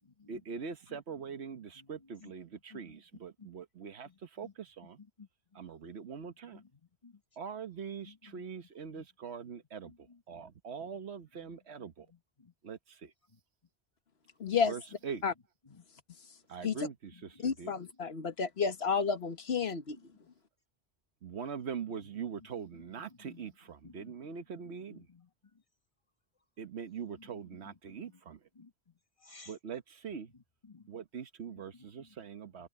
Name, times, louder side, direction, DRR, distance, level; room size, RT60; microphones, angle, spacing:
voice 1, 0.3-5.0 5.5-6.6 7.4-12.1 12.6-13.1 14.6-15.2 16.5-17.7 21.2-25.1 26.6-28.4 29.5-30.3 30.9-32.7, right 6 dB, 85° right, 1.4 m, -43 dB
voice 2, 0.9-1.3 1.7-2.3 2.7-3.0 3.4-3.5 4.0-4.5 5.0-5.3 6.2-7.2 8.0-8.4 8.9-9.1 9.8-10.2 11.4-11.5 12.0-12.5 13.3-13.4 15.7-15.8 16.6-16.7 17.1-17.7 23.1-23.5 23.8-24.1 24.9-25.3 27.2-28.2 28.5-28.9 29.2-29.5 30.3-30.9 31.5-32.1 32.6-32.7, left 4 dB, 30° left, 1.7 m, -57 dB
voice 3, 14.4-14.7 15.2-15.3 16.6-16.8 17.4-20.0, left 5 dB, 70° left, 1.6 m, -31 dB
omnidirectional pair, 1.1 m